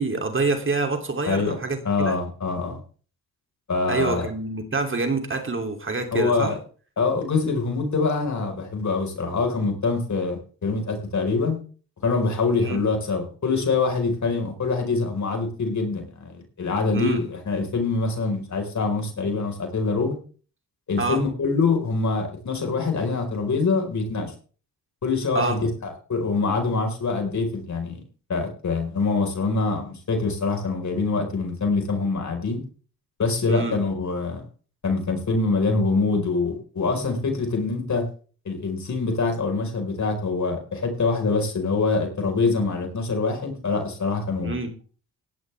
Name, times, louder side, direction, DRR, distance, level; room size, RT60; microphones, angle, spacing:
voice 1, 0.0-2.2 3.9-6.5 12.6-12.8 16.9-17.2 21.0-21.2 25.3-25.6 33.5-33.8 44.4-44.7, right 3 dB, 35° right, 5 dB, 3.1 m, -26 dB
voice 2, 1.2-1.6 1.8-2.8 3.7-4.3 6.1-6.6 7.0-11.6 12.0-20.1 20.9-24.3 25.0-28.0 28.3-32.6 33.2-34.4 34.8-38.0 38.4-44.6, left 4 dB, 50° left, 3 dB, 4.8 m, -24 dB
17.0 x 12.0 x 3.5 m, 0.40 s
supercardioid pair, 65°, 36 cm